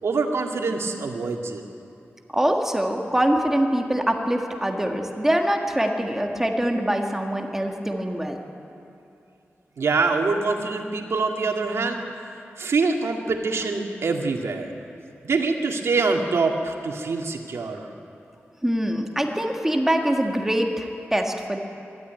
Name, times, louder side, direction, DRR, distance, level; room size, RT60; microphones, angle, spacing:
voice 1, 0.0-1.6 9.8-12.0 12.6-14.7 15.2-17.9, right 4 dB, 75° right, 2 dB, 2.1 m, -24 dB
voice 2, 2.3-8.4 18.6-21.6, right 1 dB, 10° right, 2 dB, 1.6 m, -24 dB
24.5 x 13.0 x 9.4 m, 2.7 s
wide cardioid pair, 145°, 5 cm